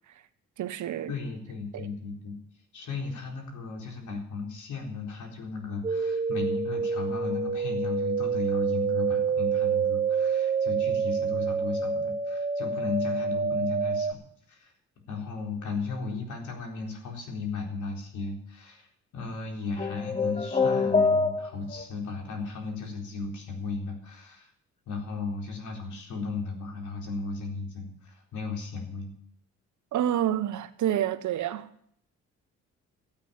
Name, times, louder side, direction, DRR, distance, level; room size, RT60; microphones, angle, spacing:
voice 1, 0.6-1.1 1.7-1.9 29.9-31.7, right 11 dB, 70° right, 1.1 m, -28 dB
voice 2, 1.1-2.4 2.7-14.2 14.5-14.7 15.1-18.9 19.1-24.5 24.9-29.1, left 4 dB, 80° left, 4.1 m, -35 dB
sound 1, 5.8-14.1, right 5 dB, 25° right, 1.0 m, -27 dB
sound 2, 19.8-21.8, left 4 dB, 20° left, 1.1 m, -25 dB
13.0 x 8.8 x 8.8 m
cardioid pair, 90°, 30 cm